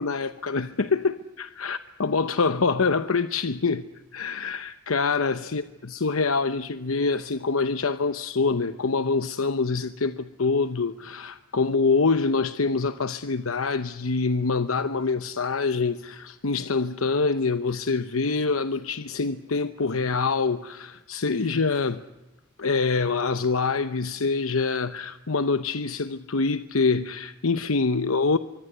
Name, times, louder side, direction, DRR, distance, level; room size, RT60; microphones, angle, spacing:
voice 1, 0.0-3.9 4.1-5.6 5.9-22.0 22.6-28.4, left 4 dB, 80° left, 0.9 m, -25 dB
24.5 x 24.0 x 8.1 m
head